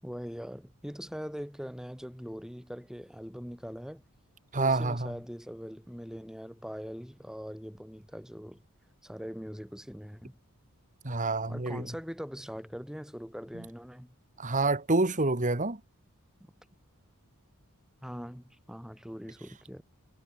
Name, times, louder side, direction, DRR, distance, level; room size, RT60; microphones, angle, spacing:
voice 1, 0.0-4.0 4.5-8.6 9.0-10.4 11.5-14.1 18.0-19.8, equal, 5° right, 5.3 m, -42 dB
voice 2, 4.5-5.1 11.0-11.9 14.4-15.8, right 2 dB, 35° right, 1.8 m, -27 dB
head